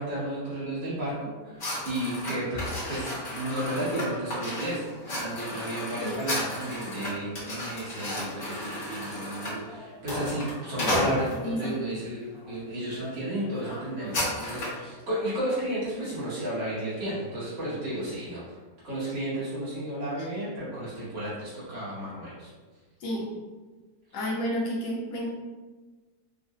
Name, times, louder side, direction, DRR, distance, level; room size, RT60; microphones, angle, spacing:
voice 1, 0.0-18.5 18.8-22.5, right 1 dB, 85° right, -10 dB, 2.3 m, -33 dB
sound 1, 1.6-11.7 12.3-12.6 12.9-13.1 13.3-14.8, left 1 dB, 50° left, 1.5 m, -33 dB
voice 2, 11.4-11.8 20.2-20.3 23.0-23.3 24.1-25.3, equal, 75° left, -3 dB, 1.3 m, -31 dB
5.0 x 2.1 x 2.5 m, 1.3 s
omnidirectional pair, 1.9 m